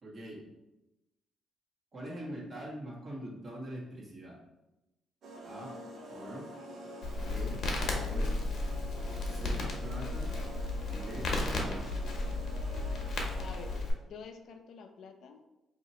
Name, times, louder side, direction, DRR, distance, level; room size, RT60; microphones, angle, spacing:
voice 1, 0.0-0.5 1.9-4.4 5.4-5.7 6.1-6.5 7.2-7.6 8.0-8.4 9.3-10.3 10.9-11.9, right 1 dB, 40° right, -4 dB, 1.3 m, -43 dB
ethereal-loop, 5.2-14.0, equal, 65° right, 0.7 m, -46 dB
voice 2, 5.5-6.1 13.4-15.4, left 5 dB, 75° left, 5 dB, 0.4 m, -49 dB
Crackle, 7.0-13.9, left 2 dB, 60° left, 0.9 m, -34 dB
2.8 x 2.7 x 4.2 m, 0.97 s
cardioid pair, 90°, 0 cm